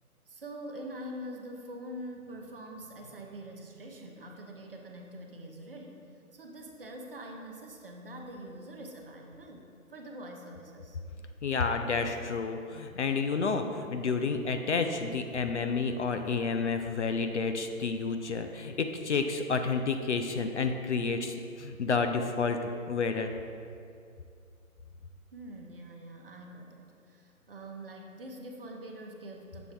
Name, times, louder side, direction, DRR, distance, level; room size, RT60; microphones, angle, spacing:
voice 1, 0.3-6.1 6.3-11.0 25.3-29.7, right 1 dB, 40° right, 1 dB, 0.6 m, -44 dB
voice 2, 11.4-23.3, left 4 dB, 55° left, 6 dB, 0.5 m, -30 dB
7.1 x 3.3 x 4.6 m, 2.4 s
figure-of-eight pair, 155°, 43 cm